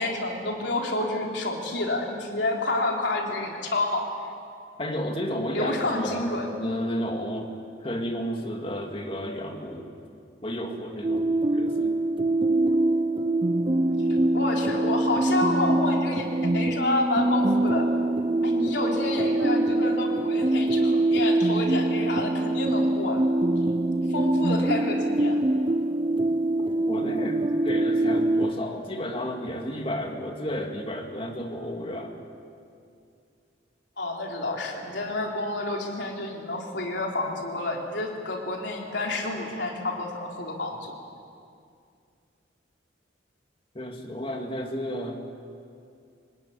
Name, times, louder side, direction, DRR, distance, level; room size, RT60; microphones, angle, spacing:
voice 1, 0.0-4.1 5.5-6.5 14.3-17.9 18.4-23.2 24.1-25.4 34.0-40.9, left 2 dB, 60° left, 0 dB, 3.8 m, -29 dB
voice 2, 4.8-6.3 6.6-9.9 10.4-11.2 11.5-12.0 26.9-32.2 43.7-45.2, equal, 25° left, 2 dB, 2.5 m, -32 dB
sound 1, 11.0-28.5, right 2 dB, 25° right, 0.5 m, -24 dB
25.0 x 19.0 x 9.6 m, 2.4 s
head